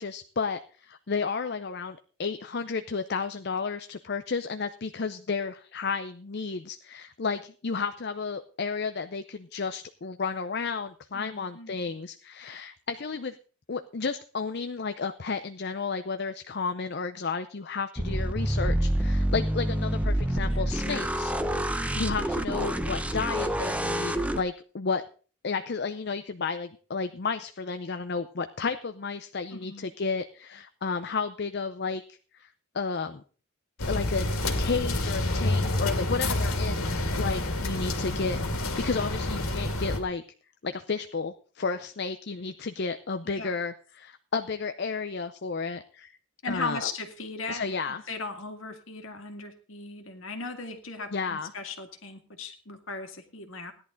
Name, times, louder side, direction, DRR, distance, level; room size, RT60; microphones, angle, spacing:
voice 1, 0.0-13.4 13.7-25.0 25.4-32.5 32.7-33.2 33.9-40.2 40.6-46.2 46.5-46.9 47.5-48.0 51.1-51.5, left 4 dB, 50° left, 9 dB, 0.6 m, -32 dB
voice 2, 11.1-11.8 20.4-20.8 29.5-29.9 43.4-43.5 46.4-53.7, left 3 dB, 65° left, 6 dB, 2.1 m, -38 dB
sound 1, 18.0-24.4, right 1 dB, 5° right, 0.7 m, -27 dB
sound 2, 33.8-40.0, left 2 dB, 85° left, 2.5 m, -28 dB
17.0 x 11.0 x 3.9 m, 0.39 s
head